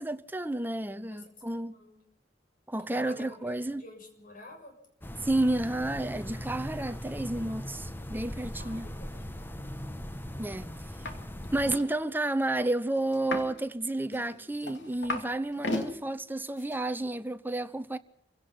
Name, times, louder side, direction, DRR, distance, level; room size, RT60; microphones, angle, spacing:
voice 1, 0.0-1.7 2.7-3.8 5.2-8.9 10.4-10.7 11.5-18.0, right 2 dB, 10° right, 0.8 m, -31 dB
voice 2, 1.5-2.0 2.9-4.7 8.6-9.5, left 1 dB, 50° left, 6.9 m, -49 dB
sound 1, 5.0-11.8, equal, 10° left, 1.1 m, -39 dB
sound 2, 11.0-11.2 11.4-11.9 13.1-13.6 14.1-15.3 15.6-15.9 16.6-16.7, left 2 dB, 75° left, 2.7 m, -34 dB
27.0 x 17.0 x 5.7 m
head